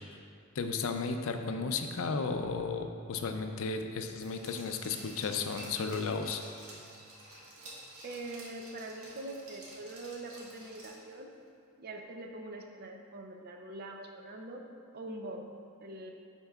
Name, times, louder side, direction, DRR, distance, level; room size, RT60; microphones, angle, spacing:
voice 1, 0.6-6.4, left 4 dB, 65° left, 6 dB, 0.4 m, -34 dB
Glass, 4.2-11.2 11.5-11.6, right 1 dB, 80° right, 1.3 m, -50 dB
voice 2, 8.0-11.3 11.8-14.6 14.9-15.5 15.8-16.1, right 2 dB, 45° right, 3 dB, 0.5 m, -43 dB
10.5 x 4.5 x 2.3 m, 2.4 s
head